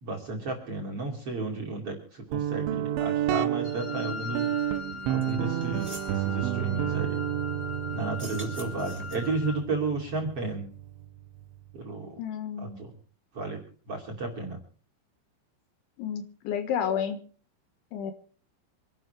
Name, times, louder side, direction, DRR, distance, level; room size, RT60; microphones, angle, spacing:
voice 1, 0.0-4.5 5.1-7.2 7.9-10.7 11.7-12.2 12.6-12.9 13.3-13.6 13.9-14.6, right 3 dB, 35° right, 0 dB, 2.9 m, -33 dB
Guitar, 2.3-11.8, right 12 dB, 80° right, 3.4 m, -31 dB
Wind instrument woodwind instrument, 3.6-9.7, left 6 dB, 45° left, 4.4 m, -40 dB
sound 1, 5.2-5.3 5.6-6.1 8.1-9.4, right 1 dB, 5° right, 2.7 m, -44 dB
voice 2, 12.2-12.8 16.0-17.2 17.9-18.1, left 8 dB, 75° left, 8 dB, 3.7 m, -31 dB
26.0 x 12.0 x 3.3 m, 0.41 s
omnidirectional pair, 5.6 m